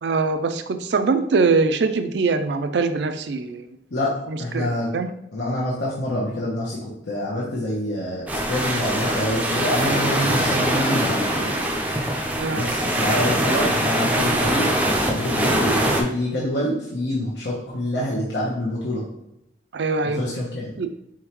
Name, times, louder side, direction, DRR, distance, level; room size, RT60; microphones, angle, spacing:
voice 1, 0.0-3.7 4.3-4.7 4.9-5.1 12.4-12.6 19.7-20.2 20.8-20.9, right 4 dB, 75° right, 9 dB, 0.4 m, -22 dB
voice 2, 3.9-4.9 5.3-6.8 7.1-11.5 12.5-19.0 20.0-20.7, left 1 dB, 75° left, -6 dB, 1.0 m, -26 dB
sound 1, 8.3-16.0, right 1 dB, 10° right, 0.5 m, -22 dB
4.4 x 3.6 x 3.0 m, 0.83 s
head